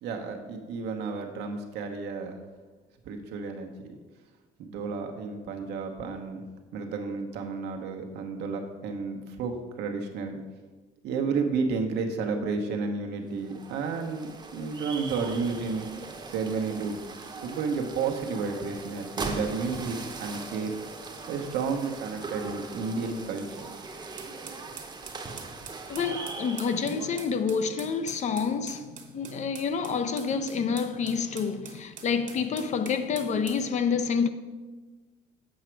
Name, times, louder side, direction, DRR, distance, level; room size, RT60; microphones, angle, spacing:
voice 1, 0.0-2.4 3.0-3.7 4.6-6.4 6.7-10.4 11.0-15.9 16.3-17.0 17.4-20.7 21.3-23.7, right 4 dB, 80° right, 1.0 m, -31 dB
sound 1, 13.3-27.4, right 3 dB, 25° right, 0.8 m, -40 dB
sound 2, 24.2-33.7, right 7 dB, 50° right, 1.1 m, -45 dB
voice 2, 25.9-34.3, left 6 dB, 45° left, 0.5 m, -28 dB
7.4 x 4.9 x 4.5 m
cardioid pair, 110°, 17 cm